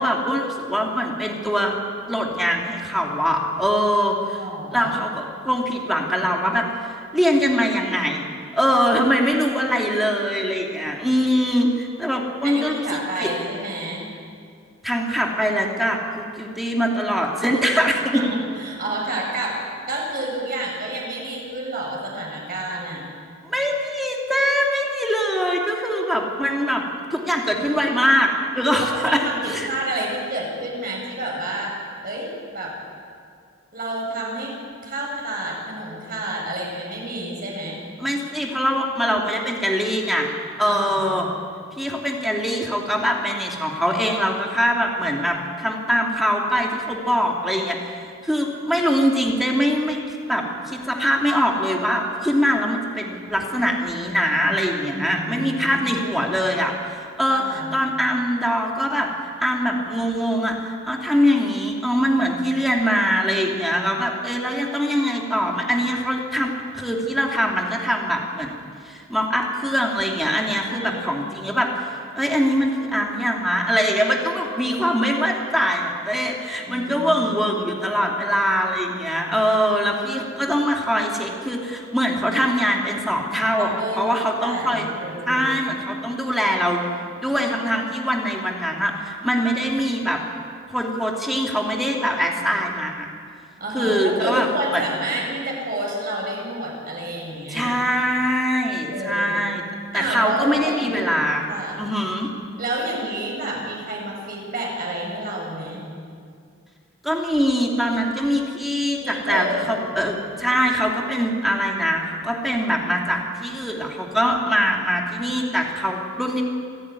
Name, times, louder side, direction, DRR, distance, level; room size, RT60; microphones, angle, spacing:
voice 1, 0.0-1.7 2.1-4.4 4.7-8.3 8.5-13.3 14.8-18.2 23.4-26.8 27.1-29.7 38.0-40.3 40.6-41.3 41.8-50.0 50.3-59.1 59.4-68.6 68.8-71.9 72.1-84.8 85.3-86.8 87.2-90.2 90.7-93.1 93.7-94.5 94.7-94.8 97.5-99.6 99.9-101.5 101.8-102.3 107.0-116.4, equal, ahead, -1 dB, 2.9 m, -23 dB
voice 2, 4.4-5.0 12.4-14.1 18.1-23.0 28.8-31.8 32.0-32.8 33.7-34.5 34.8-37.8 40.6-41.2 54.9-56.1 57.3-57.8 70.7-71.2 76.6-77.8 83.6-85.6 93.6-97.8 98.9-99.5 99.9-101.0 101.5-101.8 102.6-105.9 109.0-109.7, right 1 dB, 45° right, -2 dB, 8.0 m, -29 dB
27.0 x 17.0 x 9.9 m, 2.2 s
head